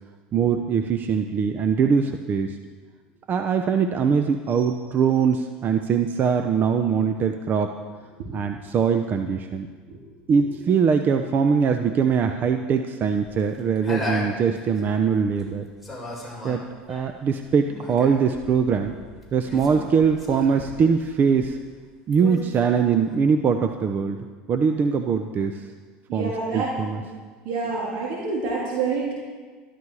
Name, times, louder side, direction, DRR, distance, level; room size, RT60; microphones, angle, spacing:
voice 1, 0.3-2.6 3.3-7.7 8.3-9.7 10.3-15.7 16.4-16.6 16.9-18.9 19.3-21.6 22.1-24.2 24.5-25.7 26.1-27.0, right 6 dB, 40° right, 6 dB, 0.8 m, -22 dB
sound 1, 13.1-15.5 15.8-21.8 22.1-23.2, left 2 dB, ahead, 4.5 m, -36 dB
voice 2, 26.1-27.0 27.5-29.1, right 4 dB, 70° right, -5 dB, 3.5 m, -28 dB
13.5 x 12.5 x 4.9 m, 1.5 s
supercardioid pair, 95°, 5 cm